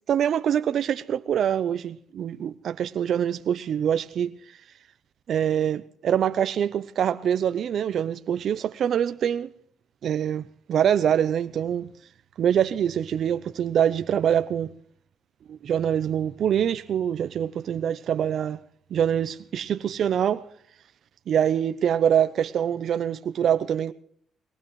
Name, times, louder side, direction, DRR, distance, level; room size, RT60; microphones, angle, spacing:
voice 1, 0.1-4.4 5.3-9.5 10.0-11.9 12.4-14.7 15.5-18.6 18.9-20.4 21.3-23.9, right 9 dB, 65° right, 0.6 m, -24 dB
21.5 x 19.0 x 3.1 m
cardioid pair, 90°, 0 cm